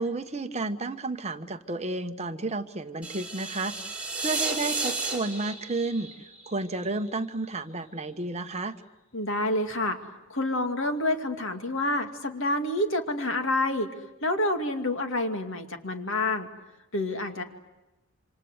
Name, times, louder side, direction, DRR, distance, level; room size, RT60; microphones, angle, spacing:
voice 1, 0.0-8.7, right 2 dB, 30° right, 8 dB, 1.1 m, -32 dB
sound 1, 3.0-7.1, right 3 dB, 5° right, 5.5 m, -33 dB
voice 2, 9.1-10.0 10.3-13.9 14.2-16.5 16.9-17.4, left 1 dB, 60° left, 6 dB, 2.5 m, -28 dB
27.5 x 26.0 x 8.1 m, 1.0 s
head